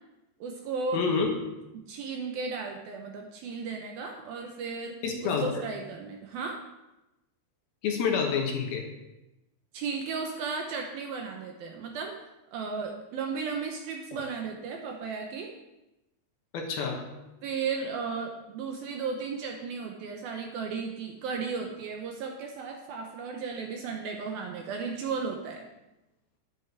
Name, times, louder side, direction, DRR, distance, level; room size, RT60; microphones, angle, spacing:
voice 1, 0.4-1.0 1.7-6.6 9.7-12.2 12.5-15.5 17.4-25.7, right 5 dB, 75° right, 2 dB, 2.4 m, -35 dB
voice 2, 0.9-1.3 5.0-5.5 7.8-8.8 14.1-14.2 16.5-17.0, left 5 dB, 70° left, 2 dB, 2.8 m, -28 dB
10.5 x 10.0 x 4.7 m, 0.96 s
omnidirectional pair, 5.0 m